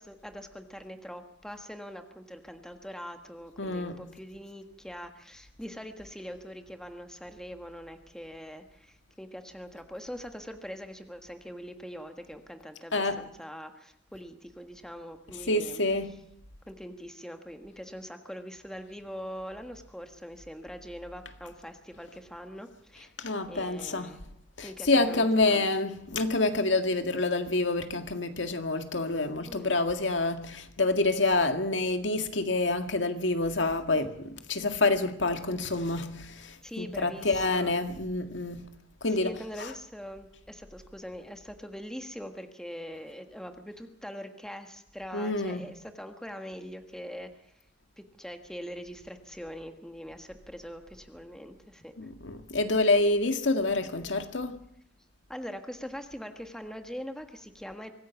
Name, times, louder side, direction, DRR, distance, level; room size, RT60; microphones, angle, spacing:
voice 1, 0.0-15.8 16.7-23.1 23.5-24.2 24.6-25.7 29.5-29.7 36.6-37.7 39.2-47.3 48.0-51.9 55.3-57.9, equal, 5° left, 1.5 m, -42 dB
voice 2, 3.6-4.0 12.9-13.3 15.3-16.2 23.2-24.2 24.6-38.7 39.0-39.7 45.1-45.7 52.0-54.6, left 2 dB, 90° left, 1.9 m, -27 dB
24.5 x 15.5 x 7.1 m
head